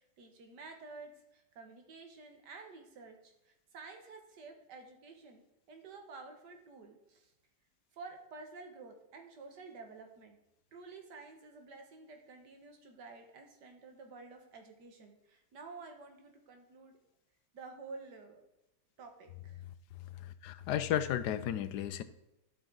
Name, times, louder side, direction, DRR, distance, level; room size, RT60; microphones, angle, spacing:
voice 1, 0.0-5.4 5.7-7.3 7.9-10.4 10.7-17.0 17.5-18.4 19.0-19.6, right 4 dB, 85° right, 4 dB, 1.9 m, -51 dB
voice 2, 20.2-22.0, left 10 dB, 80° left, 12 dB, 1.2 m, -33 dB
12.0 x 6.0 x 3.9 m, 0.92 s
omnidirectional pair, 1.8 m